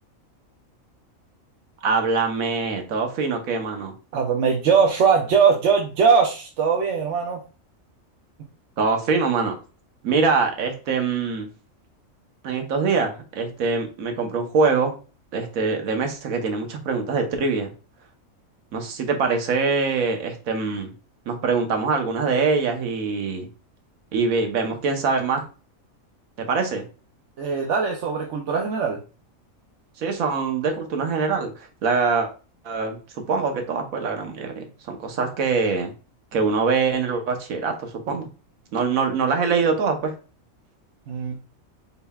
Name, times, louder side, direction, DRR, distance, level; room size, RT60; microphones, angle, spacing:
voice 1, 1.8-3.9 8.8-9.5 10.0-11.5 12.4-15.0 15.3-17.7 18.7-20.9 21.3-23.5 24.1-25.4 26.4-26.8 30.0-31.5 31.8-32.3 32.6-33.0 33.3-35.9 36.3-38.3 38.7-40.1, right 4 dB, 80° right, 5 dB, 1.3 m, -23 dB
voice 2, 4.1-7.4 27.4-29.0 41.1-41.4, right 6 dB, 65° right, 2 dB, 0.9 m, -20 dB
4.1 x 3.8 x 2.2 m, 0.34 s
omnidirectional pair, 1.4 m